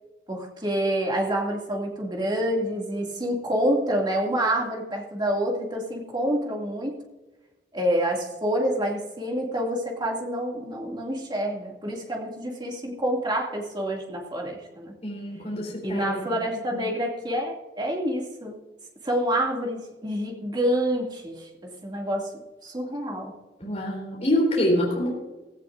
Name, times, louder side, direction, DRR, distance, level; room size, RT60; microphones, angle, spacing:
voice 1, 0.3-7.0 7.7-14.9 15.8-18.6 19.0-22.3 22.6-23.3, equal, 25° right, 0 dB, 2.4 m, -27 dB
voice 2, 15.0-16.4 16.7-16.8 23.6-25.1, equal, 40° left, -3 dB, 3.8 m, -26 dB
16.5 x 15.5 x 2.6 m, 1.1 s
head